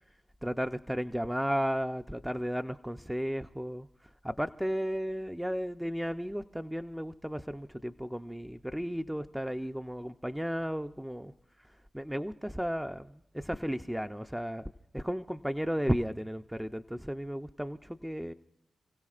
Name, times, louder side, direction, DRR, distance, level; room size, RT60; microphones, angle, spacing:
voice 1, 0.4-3.9 4.2-11.3 11.9-18.3, equal, 5° right, 7 dB, 0.5 m, -34 dB
29.5 x 16.0 x 2.5 m, 0.80 s
supercardioid pair, 40°, 0 cm